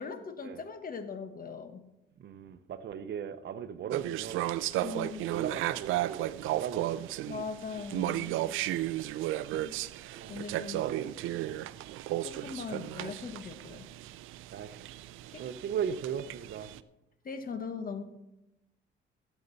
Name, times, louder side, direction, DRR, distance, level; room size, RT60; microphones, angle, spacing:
voice 1, 0.0-1.9 4.8-5.3 7.3-8.4 9.6-9.8 10.3-10.9 12.2-13.9 15.3-15.4 17.2-18.0, left 5 dB, 45° left, 1.3 m, -40 dB
voice 2, 2.2-4.6 4.8-7.3 10.1-10.4 10.8-11.6 13.7-13.8 14.5-14.9 15.4-16.7, right 8 dB, 60° right, 0.7 m, -38 dB
sound 1, 3.9-16.8, right 14 dB, 90° right, 0.4 m, -34 dB
17.0 x 8.0 x 4.0 m
cardioid pair, 90°, 20 cm